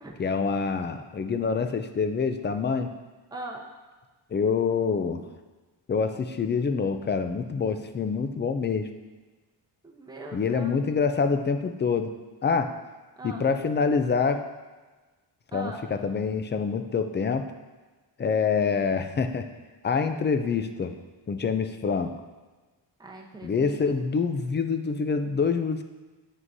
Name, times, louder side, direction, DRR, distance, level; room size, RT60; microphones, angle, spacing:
voice 1, 0.2-2.9 4.3-5.2 5.9-8.9 10.3-12.1 12.4-12.7 13.2-14.4 15.5-17.4 18.2-19.4 19.8-20.9 21.3-22.1 23.4-25.8, left 5 dB, 25° left, 8 dB, 0.4 m, -26 dB
voice 2, 3.3-3.6 9.8-10.8 13.2-13.5 15.5-15.9 23.0-23.8, right 2 dB, 10° right, -1 dB, 0.9 m, -40 dB
9.3 x 6.1 x 2.7 m, 1.3 s
wide cardioid pair, 140°, 44 cm